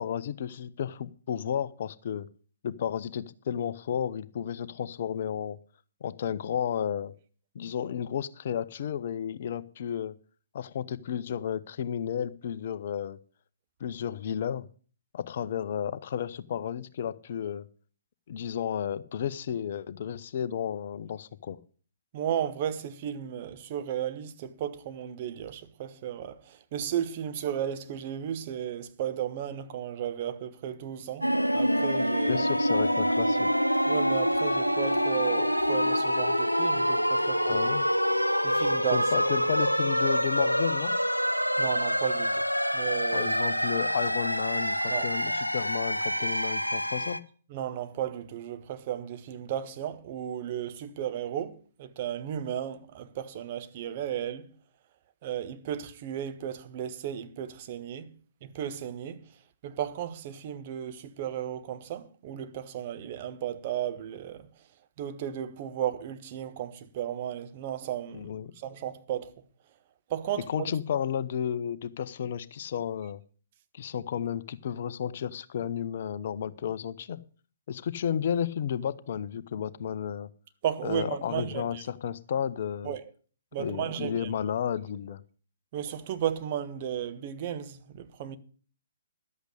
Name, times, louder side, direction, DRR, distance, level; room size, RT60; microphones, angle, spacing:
voice 1, 0.0-2.3 2.6-5.6 6.0-7.1 7.5-10.2 10.5-13.2 13.8-14.7 15.1-17.7 18.3-21.6 32.3-33.5 37.4-37.9 38.9-41.0 43.1-47.2 68.1-68.5 70.5-73.2 73.7-77.2 77.7-80.3 80.8-82.9 83.6-85.2, left 9 dB, 45° left, 0.6 m, -32 dB
voice 2, 22.1-32.4 33.9-37.8 38.4-39.1 41.6-42.4 42.7-43.3 44.8-45.4 47.5-54.5 55.2-58.1 58.4-59.3 59.6-64.5 65.0-69.3 70.1-70.7 80.6-81.8 82.8-83.0 83.5-84.3 85.7-88.4, right 10 dB, 35° right, 1.0 m, -34 dB
sound 1, 31.2-47.2, equal, 90° left, 0.7 m, -26 dB
11.5 x 8.2 x 6.4 m
figure-of-eight pair, 125°, 0 cm